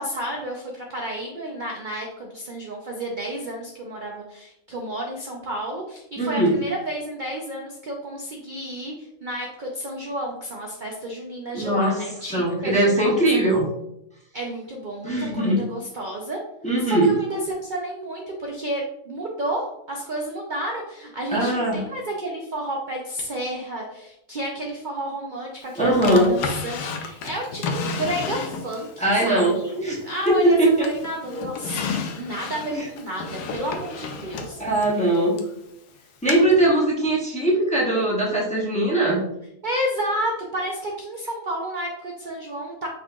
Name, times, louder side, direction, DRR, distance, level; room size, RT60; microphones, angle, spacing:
voice 1, 0.0-13.2 14.3-16.4 16.9-29.7 30.0-34.6 39.6-42.9, right 1 dB, 65° right, -1 dB, 0.5 m, -31 dB
voice 2, 6.2-6.6 11.5-12.0 12.3-13.7 15.0-15.6 16.6-17.1 21.3-21.8 25.7-26.3 29.0-30.9 32.7-32.9 34.6-35.4 36.2-39.3, right 1 dB, 5° left, -4 dB, 0.7 m, -20 dB
Drawer open or close, 26.0-28.9 29.4-30.5 30.8-35.5 36.3-36.4, left 5 dB, 85° left, 1.2 m, -32 dB
5.3 x 3.8 x 2.4 m, 0.82 s
omnidirectional pair, 1.7 m